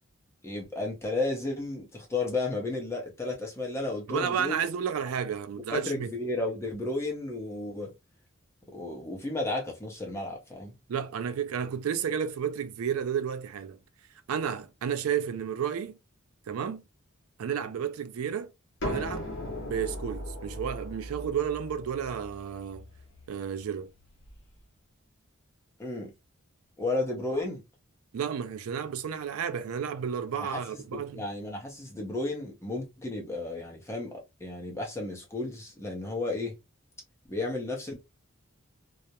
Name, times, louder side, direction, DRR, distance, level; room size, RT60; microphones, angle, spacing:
voice 1, 0.4-4.6 5.7-7.9 8.7-10.8 19.2-19.3 25.8-26.1 26.8-27.6 30.3-36.5 37.3-38.0, left 2 dB, 10° left, 0.6 m, -33 dB
voice 2, 4.1-6.1 10.9-13.8 14.3-16.0 16.5-16.8 17.4-18.5 18.8-19.3 19.6-22.8 23.3-23.9 28.1-31.2, right 8 dB, 80° right, 0.4 m, -32 dB
sound 1, 18.8-24.4, left 1 dB, 55° left, 0.8 m, -38 dB
2.3 x 2.0 x 2.8 m
head